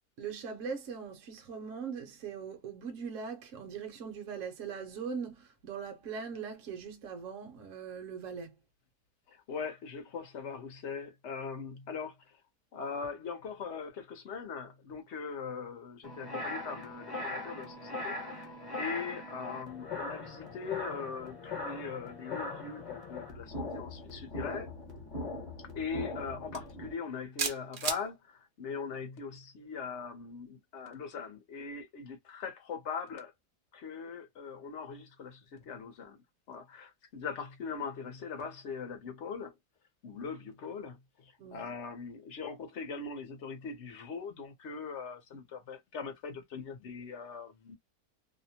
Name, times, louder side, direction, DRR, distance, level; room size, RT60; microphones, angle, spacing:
voice 1, 0.2-8.5 41.4-41.7, right 6 dB, 60° right, 1.0 m, -41 dB
voice 2, 9.3-12.4 12.7-24.7 25.7-33.3 33.7-36.2 36.5-39.5 40.0-47.8, left 5 dB, 55° left, 0.9 m, -41 dB
sound 1, 16.0-26.9, left 2 dB, 35° left, 0.9 m, -40 dB
sound 2, 26.5-26.7 27.4-28.0, right 6 dB, 80° right, 0.4 m, -32 dB
2.8 x 2.1 x 2.7 m
omnidirectional pair, 1.6 m